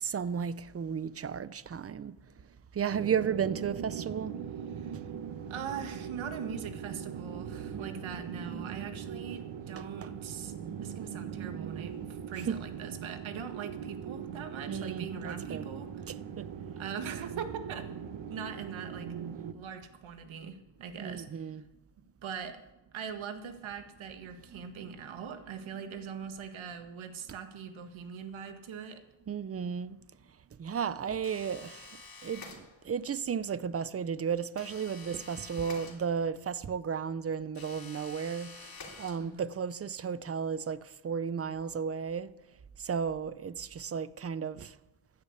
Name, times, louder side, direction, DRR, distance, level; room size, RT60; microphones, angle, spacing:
voice 1, 0.0-2.2 2.7-4.3 7.7-8.1 9.8-10.1 12.5-12.6 14.7-15.7 16.1-16.5 21.0-21.6 24.5-25.1 29.3-30.0 30.6-31.8 32.2-38.5 39.0-42.3 42.8-44.7, right 7 dB, 30° right, 0.6 m, -34 dB
sound 1, 2.9-19.5, right 8 dB, 70° right, 1.2 m, -40 dB
voice 2, 5.5-10.5 10.8-15.9 16.8-17.9 18.3-19.1 19.5-21.5 22.2-22.6 22.9-29.0 39.2-39.5, right 7 dB, 85° right, 1.8 m, -41 dB
sound 2, 31.2-33.1 34.6-36.5 37.5-39.6, left 4 dB, 50° left, 3.3 m, -49 dB
15.0 x 10.5 x 8.3 m
cardioid pair, 125°, 46 cm